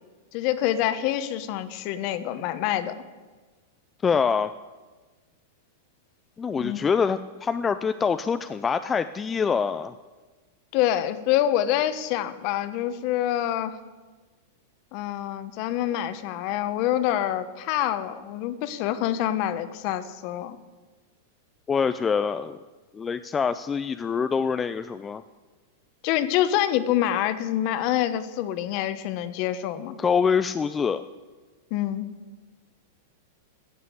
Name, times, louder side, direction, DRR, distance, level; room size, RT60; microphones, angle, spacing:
voice 1, 0.3-2.9 6.6-6.9 10.7-13.8 14.9-20.6 26.0-30.0 31.7-32.1, left 12 dB, 45° left, 12 dB, 1.0 m, -26 dB
voice 2, 4.0-4.5 6.4-9.9 21.7-22.6 22.9-25.2 30.0-31.0, left 6 dB, 15° left, 10 dB, 0.4 m, -25 dB
14.0 x 7.5 x 8.0 m, 1.3 s
hypercardioid pair, 135°, 0 cm